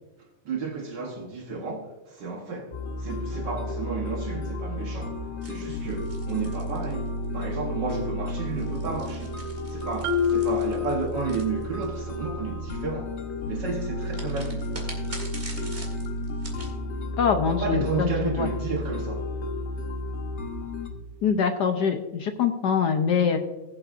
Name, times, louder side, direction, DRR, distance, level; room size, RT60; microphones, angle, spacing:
voice 1, 0.4-9.4 9.7-13.1 13.5-14.7 17.5-19.3, right 4 dB, 55° right, 1.7 m, -32 dB
sound 1, 2.7-20.9, left 1 dB, 40° left, 1.1 m, -32 dB
sound 2, 5.4-7.4 8.4-12.1 14.1-16.7, right 2 dB, 25° right, 2.2 m, -44 dB
Marimba xylophone, 10.0-11.8, left 8 dB, 85° right, 1.8 m, -27 dB
voice 2, 17.2-18.5 21.2-23.4, left 6 dB, 65° left, 1.1 m, -24 dB
19.5 x 7.9 x 2.5 m
omnidirectional pair, 2.4 m